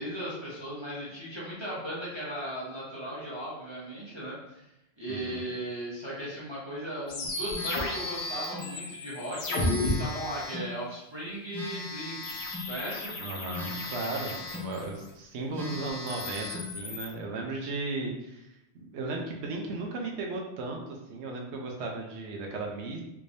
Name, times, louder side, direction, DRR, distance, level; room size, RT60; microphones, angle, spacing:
voice 1, 0.0-4.6 5.0-13.1, right 1 dB, 25° right, -8 dB, 1.1 m, -37 dB
voice 2, 5.1-5.4 13.2-18.5 18.7-23.0, right 2 dB, 75° right, 1 dB, 0.9 m, -35 dB
sound 1, 7.1-9.9 12.2-15.0 15.9-17.1, left 2 dB, 75° left, 1.0 m, -34 dB
Telephone, 7.5-8.7 9.5-10.7 11.5-12.7 13.5-14.7 15.2-15.3 15.5-16.7, left 2 dB, ahead, 0.9 m, -39 dB
3.4 x 3.2 x 2.6 m, 0.88 s
omnidirectional pair, 1.2 m